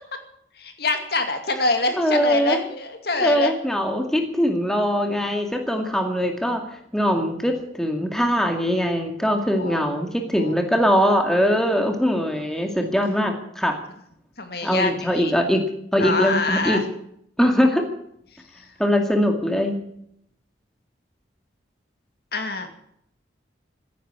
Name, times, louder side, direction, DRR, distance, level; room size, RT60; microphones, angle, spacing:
voice 1, 0.6-3.5 9.6-9.9 10.4-10.5 12.6-12.8 14.4-15.3 16.0-16.8 22.3-22.7, left 2 dB, 55° left, 6 dB, 2.4 m, -25 dB
voice 2, 2.0-2.6 3.2-6.6 6.9-13.8 14.6-15.6 15.9-16.8 17.4-17.8 18.8-19.8, equal, 5° left, 3 dB, 2.1 m, -21 dB
16.0 x 10.0 x 8.9 m, 0.70 s
head